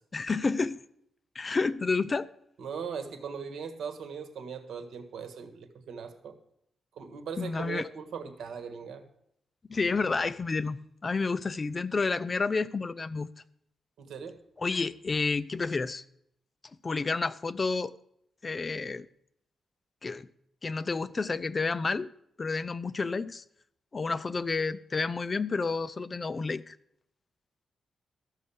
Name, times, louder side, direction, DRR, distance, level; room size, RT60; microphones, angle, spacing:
voice 1, 0.1-0.8 1.4-2.3 7.4-7.9 9.7-13.3 14.6-16.0 16.8-17.9 18.4-19.1 20.0-20.3 20.6-22.1 22.4-23.4 23.9-26.8, left 4 dB, 30° left, 0.4 m, -30 dB
voice 2, 2.6-6.3 6.9-9.0 14.0-14.4, right 6 dB, 80° right, 1.4 m, -39 dB
13.5 x 6.3 x 7.1 m
cardioid pair, 120°, 0 cm